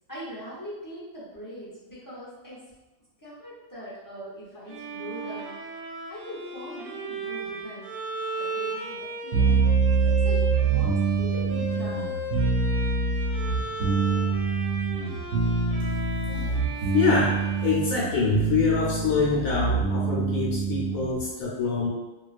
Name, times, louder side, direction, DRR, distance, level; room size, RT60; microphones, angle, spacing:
voice 1, 0.1-2.6 3.2-5.5 6.1-9.7 10.0-12.1, equal, 25° left, -10 dB, 0.5 m, -41 dB
Bowed string instrument, 4.7-18.6, right 2 dB, 70° right, 0.9 m, -36 dB
sound 1, 9.3-21.2, right 4 dB, 90° right, 1.0 m, -25 dB
voice 2, 16.3-16.6 16.9-21.9, left 5 dB, 80° left, -5 dB, 1.0 m, -25 dB
2.3 x 2.2 x 2.4 m, 1.1 s
omnidirectional pair, 1.4 m